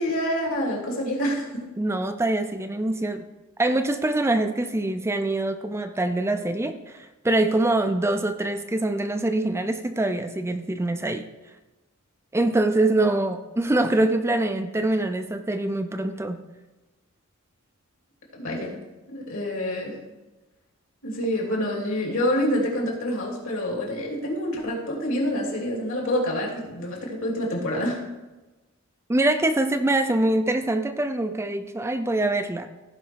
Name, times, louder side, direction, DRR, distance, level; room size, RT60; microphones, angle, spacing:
voice 1, 0.0-1.7 18.3-18.8 19.1-20.0 21.0-28.0, equal, 65° left, -1 dB, 3.1 m, -27 dB
voice 2, 1.8-3.2 3.6-11.3 12.3-16.4 29.1-32.7, right 2 dB, 10° right, 7 dB, 0.5 m, -24 dB
16.0 x 5.3 x 4.7 m, 1.1 s
head